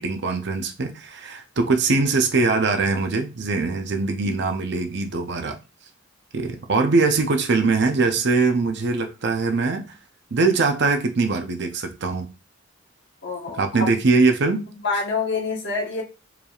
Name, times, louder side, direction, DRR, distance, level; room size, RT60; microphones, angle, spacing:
voice 1, 0.0-5.6 6.3-9.9 10.3-12.3 13.6-14.7, right 3 dB, 60° right, 0.6 m, -22 dB
voice 2, 13.2-13.6 14.8-16.0, left 4 dB, 60° left, 1.2 m, -26 dB
4.8 x 3.3 x 2.4 m
head